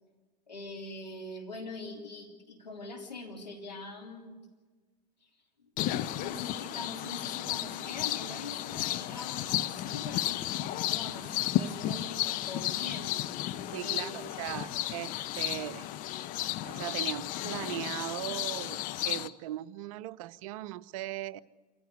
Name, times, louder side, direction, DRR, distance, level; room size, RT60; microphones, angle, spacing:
voice 1, 0.5-4.4 5.2-5.3 5.6-5.7 6.0-13.2 13.5-14.2, left 2 dB, 90° left, -1 dB, 3.3 m, -43 dB
sound 1, 5.8-19.3, left 13 dB, 40° left, 0.7 m, -33 dB
voice 2, 13.7-15.9 16.6-21.4, right 15 dB, 55° right, 17 dB, 0.6 m, -38 dB
27.0 x 15.0 x 8.2 m, 1.4 s
figure-of-eight pair, 80°, 21 cm